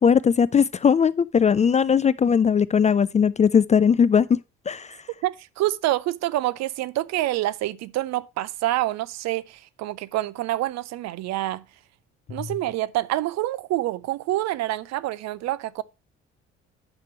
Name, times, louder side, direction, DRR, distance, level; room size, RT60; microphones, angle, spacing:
voice 1, 0.0-4.4 4.7-5.0, left 7 dB, 25° left, 0.3 m, -19 dB
voice 2, 5.2-11.6 12.3-15.8, right 15 dB, 55° right, 0.6 m, -27 dB
8.9 x 5.9 x 4.3 m
figure-of-eight pair, 45°, 31 cm